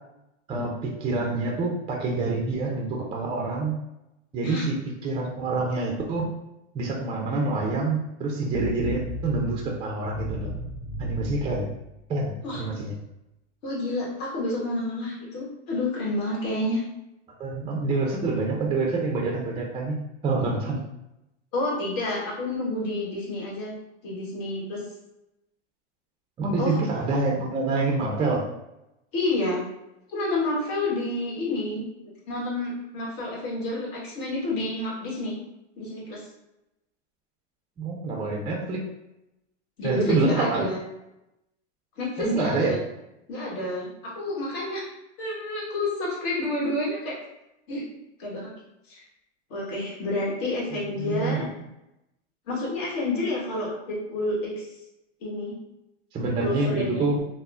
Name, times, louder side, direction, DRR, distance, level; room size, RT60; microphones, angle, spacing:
voice 1, 1.0-3.7 4.3-4.8 5.0-6.3 6.7-10.5 11.0-11.7 12.1-12.9 17.4-19.9 20.2-20.8 26.4-28.4 37.8-38.8 39.8-40.7 42.2-42.7 51.0-51.4 56.1-57.2, right 3 dB, 15° right, 0 dB, 0.3 m, -26 dB
sound 1, 8.5-12.5, left 1 dB, 80° left, 1.1 m, -36 dB
voice 2, 13.6-16.8 21.5-23.7 24.0-24.8 26.6-26.8 29.1-29.6 30.1-31.8 32.3-35.4 35.8-36.2 39.8-40.8 42.0-42.8 43.3-44.9 45.2-47.1 47.7-47.8 48.2-48.5 48.9-49.0 49.5-51.5 52.5-54.7 55.2-55.5 56.4-57.1, left 2 dB, 60° left, -4 dB, 1.4 m, -29 dB
3.5 x 2.1 x 2.4 m, 0.89 s
hypercardioid pair, 105°, 35 cm